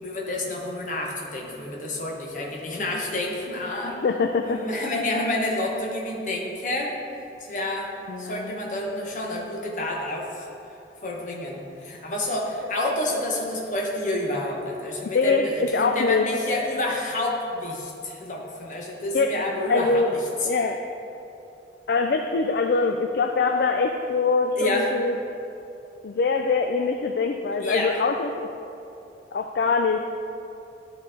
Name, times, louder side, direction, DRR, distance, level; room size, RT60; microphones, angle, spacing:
voice 1, 0.0-4.0 4.4-6.9 7.5-7.9 8.2-10.5 11.0-20.0 24.6-24.9 27.6-28.0, left 1 dB, 45° left, -1 dB, 1.1 m, -29 dB
voice 2, 3.8-4.6 8.1-8.6 15.1-16.3 19.1-19.3 19.7-20.1 20.5-20.9 21.9-25.2 26.0-28.5 29.3-30.0, left 4 dB, 60° left, 5 dB, 0.3 m, -23 dB
11.5 x 4.0 x 3.8 m, 2.8 s
head